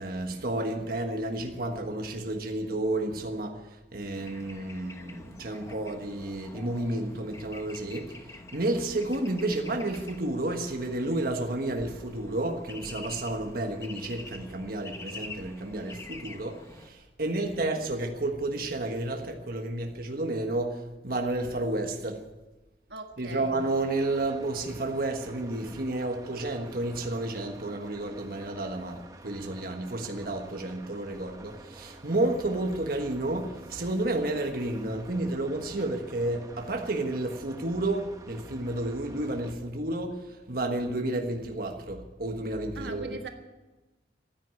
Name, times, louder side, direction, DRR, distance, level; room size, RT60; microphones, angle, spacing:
voice 1, 0.0-22.2 23.2-43.2, right 2 dB, 55° right, 3 dB, 1.5 m, -31 dB
Bird / Traffic noise roadway noise, 4.2-16.9, left 2 dB, 15° left, 1.1 m, -47 dB
voice 2, 22.9-23.5 42.7-43.3, right 3 dB, 75° right, 4 dB, 1.6 m, -41 dB
sound 1, 23.6-39.5, right 2 dB, 20° right, 1.2 m, -49 dB
15.0 x 9.7 x 9.7 m, 1.1 s
head